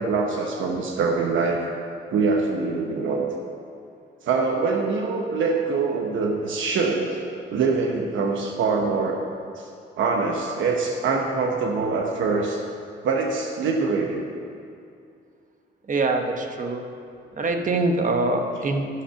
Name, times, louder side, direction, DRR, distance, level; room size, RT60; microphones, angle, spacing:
voice 1, 0.0-1.7 2.1-3.3 4.2-7.2 7.5-9.2 9.5-9.7 10.0-12.6 13.0-14.3, right 4 dB, 75° right, 1 dB, 1.1 m, -24 dB
voice 2, 15.9-16.8 17.3-18.9, right 2 dB, 40° right, 4 dB, 1.1 m, -24 dB
12.0 x 6.5 x 5.7 m, 2.4 s
cardioid pair, 90°, 20 cm